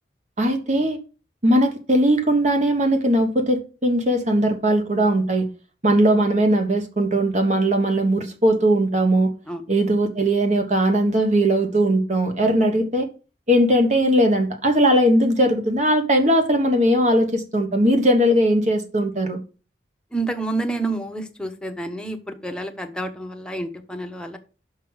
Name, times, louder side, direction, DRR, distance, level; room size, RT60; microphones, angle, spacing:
voice 1, 0.4-1.0 1.4-5.5 5.8-9.3 9.7-13.1 13.5-19.4, right 1 dB, 45° right, 1.4 m, -19 dB
voice 2, 20.1-24.4, right 2 dB, 5° left, 0.9 m, -29 dB
5.9 x 5.6 x 6.3 m
head